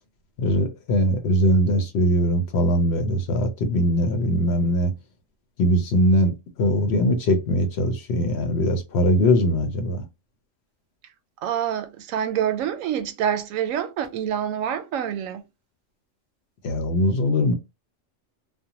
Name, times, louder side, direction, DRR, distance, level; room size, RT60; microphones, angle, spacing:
voice 1, 0.4-4.9 5.6-10.0 16.6-17.5, equal, 60° left, 0.8 m, -21 dB
voice 2, 11.4-15.5, right 9 dB, 90° right, 1.0 m, -26 dB
2.5 x 2.1 x 2.8 m
omnidirectional pair, 1.3 m